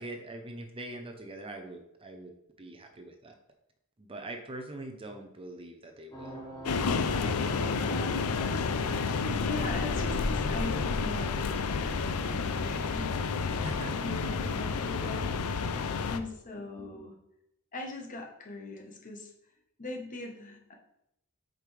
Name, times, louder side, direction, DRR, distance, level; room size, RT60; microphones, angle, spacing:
voice 1, 0.0-2.3 2.6-3.3 4.0-6.4 13.5-14.0, right 2 dB, 25° right, 4 dB, 0.6 m, -43 dB
sound 1, 6.1-16.0, right 1 dB, 15° left, 1.6 m, -45 dB
sound 2, 6.6-16.2, left 4 dB, 80° left, 0.5 m, -30 dB
voice 2, 9.2-13.1 13.6-15.8 16.1-17.1 17.7-19.3 19.8-20.7, left 2 dB, 35° left, 1 dB, 1.1 m, -40 dB
8.0 x 5.1 x 3.3 m, 0.81 s
head